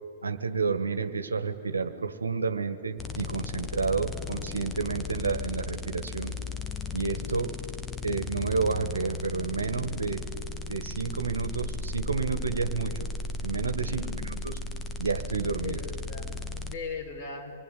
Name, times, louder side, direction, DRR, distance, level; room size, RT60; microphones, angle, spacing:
voice 1, 0.2-6.4 6.9-7.6 8.0-10.3 10.7-13.1 13.4-14.0 14.4-14.5 15.0-15.8, right 4 dB, 85° right, 10 dB, 1.7 m, -30 dB
sound 1, 3.0-16.7, left 3 dB, 15° left, 1.6 m, -35 dB
voice 2, 13.8-14.3 15.6-17.5, left 4 dB, 45° left, 3 dB, 4.7 m, -39 dB
26.5 x 20.5 x 8.6 m, 2.2 s
hypercardioid pair, 115°, 0 cm